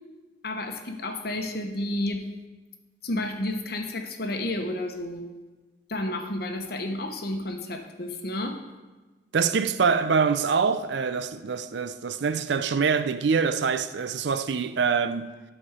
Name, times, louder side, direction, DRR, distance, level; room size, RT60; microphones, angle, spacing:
voice 1, 0.4-2.3 3.0-5.3 5.9-8.6, left 1 dB, 55° left, 1.0 m, -31 dB
voice 2, 9.3-15.3, right 5 dB, 70° right, 0.5 m, -25 dB
12.5 x 4.3 x 4.9 m
head